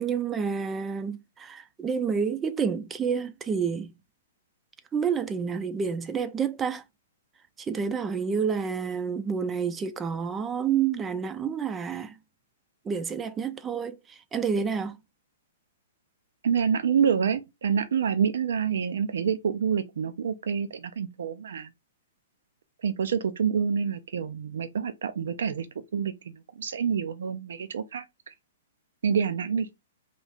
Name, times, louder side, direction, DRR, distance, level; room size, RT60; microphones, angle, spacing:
voice 1, 0.0-3.9 4.9-6.8 7.6-12.2 12.8-15.0, right 6 dB, 10° right, 0.4 m, -29 dB
voice 2, 16.4-21.7 22.8-25.7 25.9-28.3 29.0-29.7, right 7 dB, 80° right, 0.5 m, -27 dB
3.1 x 2.4 x 4.0 m
hypercardioid pair, 165°, 0 cm